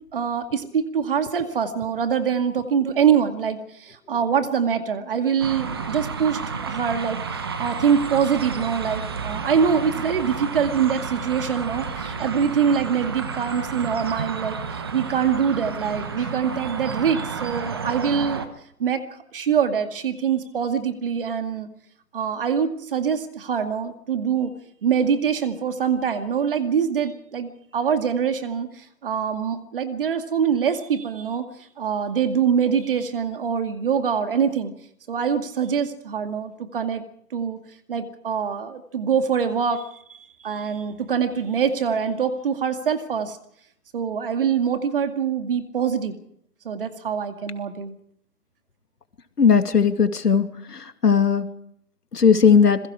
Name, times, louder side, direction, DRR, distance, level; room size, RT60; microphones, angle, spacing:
voice 1, 0.1-18.4 18.8-19.0 19.3-21.7 22.1-24.5 24.8-31.5 31.8-34.7 35.1-37.0 37.3-37.6 37.9-39.8 40.1-43.4 43.9-46.1 46.6-47.9, right 7 dB, 35° right, 8 dB, 2.2 m, -24 dB
sound 1, 5.4-18.5, right 5 dB, 15° right, 0.9 m, -31 dB
voice 2, 49.4-50.4 50.7-51.5 52.1-52.8, left 6 dB, 85° left, 8 dB, 2.6 m, -17 dB
26.5 x 22.0 x 4.9 m, 0.71 s
hypercardioid pair, 165°, 46 cm